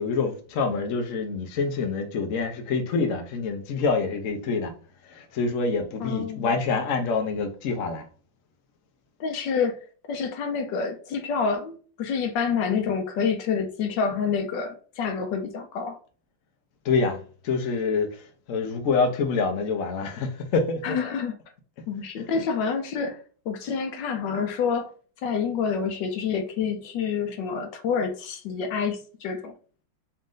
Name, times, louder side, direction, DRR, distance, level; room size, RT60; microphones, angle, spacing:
voice 1, 0.0-4.7 5.0-8.1 16.8-21.0 22.3-22.4, left 4 dB, 60° left, 0.9 m, -26 dB
voice 2, 6.0-6.5 9.2-9.8 10.1-16.0 20.8-21.3 21.9-23.2 23.5-24.9 25.2-29.5, left 6 dB, 75° left, 1.3 m, -28 dB
4.2 x 2.5 x 3.7 m
omnidirectional pair, 2.1 m